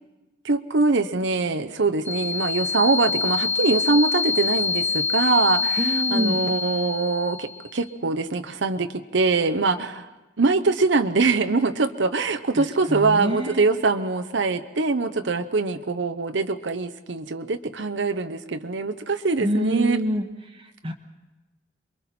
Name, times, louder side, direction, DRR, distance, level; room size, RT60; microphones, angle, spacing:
voice 1, 0.4-10.1 10.4-20.0, right 3 dB, 85° right, 9 dB, 0.9 m, -23 dB
sound 1, 2.1-7.7, left 5 dB, 10° left, 0.8 m, -26 dB
voice 2, 5.8-6.4 12.6-13.6 19.4-20.2 20.5-20.9, equal, 30° right, 3 dB, 1.1 m, -26 dB
28.0 x 23.0 x 4.3 m, 1.1 s
head